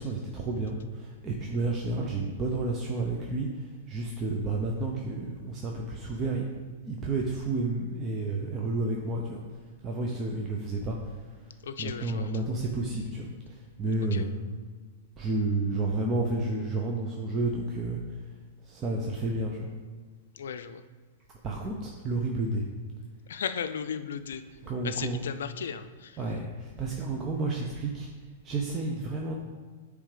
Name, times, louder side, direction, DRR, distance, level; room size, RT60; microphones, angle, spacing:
voice 1, 0.0-6.5 6.8-9.4 9.8-11.2 11.4-14.3 15.2-18.3 18.6-19.7 21.4-22.6 24.6-25.3 26.2-28.1 28.4-29.3, right 2 dB, 25° right, -1 dB, 0.8 m, -31 dB
voice 2, 11.6-12.3 14.1-14.2 20.3-20.8 23.3-24.4 24.8-26.2, left 7 dB, 75° left, 10 dB, 0.5 m, -35 dB
8.6 x 3.4 x 5.0 m, 1.5 s
hypercardioid pair, 115°, 0 cm